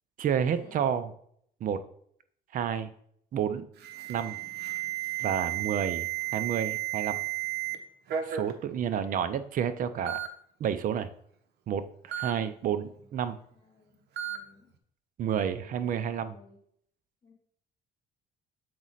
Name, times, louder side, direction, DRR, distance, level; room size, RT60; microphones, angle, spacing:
voice 1, 0.2-1.1 1.6-1.8 2.5-2.9 3.3-3.7 4.1-4.4 5.2-7.2 8.2-10.2 10.6-11.1 11.7-13.4 15.2-16.4, right 8 dB, 55° right, 11 dB, 0.7 m, -30 dB
Alarm, 3.8-7.8 8.1-8.5 9.4-9.5 10.1-10.3 12.1-12.3 14.2-14.4, right 13 dB, 75° right, 0.9 m, -33 dB
voice 2, 8.7-9.3 12.2-13.1 13.5-14.7 15.5-15.9 16.2-16.6 17.2-17.3, left 4 dB, 35° left, -6 dB, 2.7 m, -59 dB
7.8 x 4.2 x 4.0 m, 0.63 s
cardioid pair, 110°, 17 cm